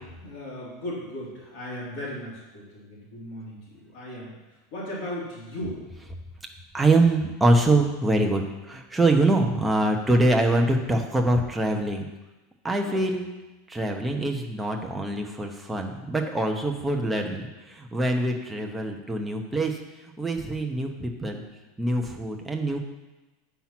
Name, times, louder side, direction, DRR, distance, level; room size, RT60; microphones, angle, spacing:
voice 1, 0.2-5.8 12.8-13.1 20.7-20.8, left 1 dB, 45° left, -6 dB, 3.4 m, -37 dB
voice 2, 6.7-12.1 12.6-13.3 13.7-17.4 17.7-19.7 20.2-21.4 21.8-22.8, right 2 dB, 5° right, 1 dB, 0.9 m, -24 dB
8.4 x 5.8 x 6.0 m, 1.1 s
supercardioid pair, 170°, 0 cm